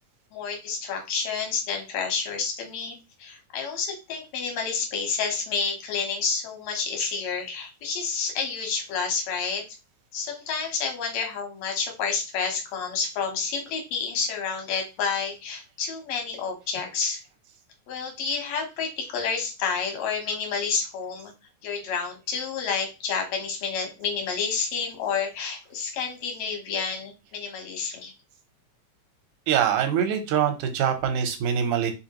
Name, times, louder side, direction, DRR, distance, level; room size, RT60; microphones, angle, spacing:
voice 1, 0.3-9.6 10.1-17.2 17.9-21.3 21.6-28.1, left 5 dB, 65° left, 3 dB, 2.0 m, -29 dB
voice 2, 29.5-31.9, right 8 dB, 75° right, 7 dB, 2.2 m, -24 dB
4.7 x 3.5 x 2.9 m, 0.27 s
omnidirectional pair, 3.6 m